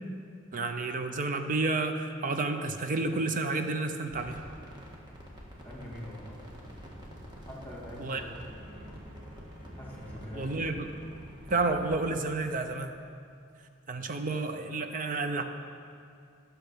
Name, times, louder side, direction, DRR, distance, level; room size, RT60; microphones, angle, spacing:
voice 1, 0.5-4.4 8.0-8.2 10.3-10.8 11.5-12.9 13.9-15.4, right 3 dB, 40° right, 7 dB, 0.6 m, -30 dB
sound 1, 4.0-12.6, equal, 20° right, 1.8 m, -47 dB
voice 2, 5.6-6.4 7.4-8.4 8.8-8.9 9.7-10.5, left 1 dB, 10° left, -3 dB, 2.4 m, -44 dB
12.5 x 7.2 x 5.8 m, 2.3 s
head